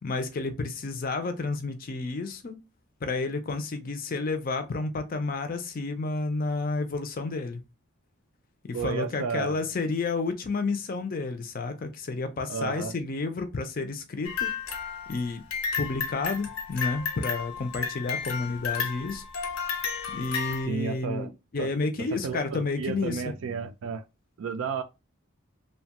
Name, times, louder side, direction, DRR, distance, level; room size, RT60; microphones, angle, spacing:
voice 1, 0.0-2.6 3.0-7.6 8.6-14.5 15.1-15.4 15.8-19.2 20.1-23.3, left 3 dB, 40° left, 0.4 m, -31 dB
voice 2, 8.7-9.6 12.5-12.9 20.7-21.3 21.6-21.7 22.2-24.0 24.4-24.8, right 5 dB, 70° right, 0.3 m, -32 dB
sound 1, 14.2-20.7, left 6 dB, 80° left, 0.7 m, -32 dB
2.8 x 2.2 x 2.8 m
head